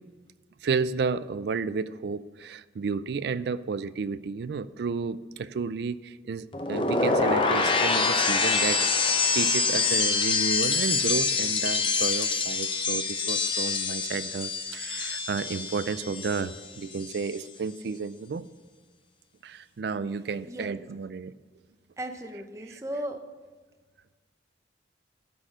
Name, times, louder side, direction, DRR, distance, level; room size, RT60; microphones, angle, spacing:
voice 1, 0.6-18.5 19.4-21.3 22.7-22.8, right 5 dB, 65° right, 16 dB, 0.3 m, -32 dB
sound 1, 6.5-16.6 16.9-17.4, left 4 dB, 30° left, 0.7 m, -26 dB
voice 2, 22.0-23.2, right 1 dB, 15° right, 6 dB, 0.7 m, -36 dB
12.0 x 4.3 x 7.4 m, 1.3 s
head